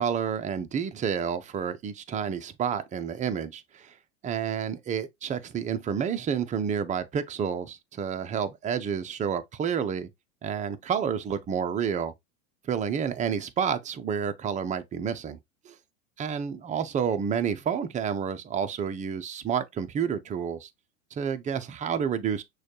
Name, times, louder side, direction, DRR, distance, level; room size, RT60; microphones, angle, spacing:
voice 1, 0.0-3.9 4.2-10.1 10.4-12.1 12.6-15.4 15.7-15.8 16.2-20.7 21.1-22.4, right 7 dB, 20° right, 0.4 m, -29 dB
6.2 x 2.3 x 2.8 m
hypercardioid pair, 95°, 43 cm